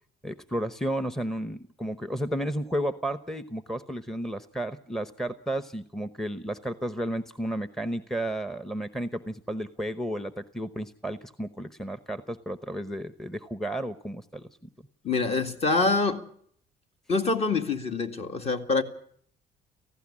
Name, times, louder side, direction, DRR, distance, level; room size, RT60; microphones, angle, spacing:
voice 1, 0.2-14.5, right 1 dB, ahead, 0.9 m, -32 dB
voice 2, 15.0-16.3 17.1-18.8, left 3 dB, 40° left, 2.1 m, -25 dB
18.0 x 15.5 x 9.8 m
cardioid pair, 110°, 17 cm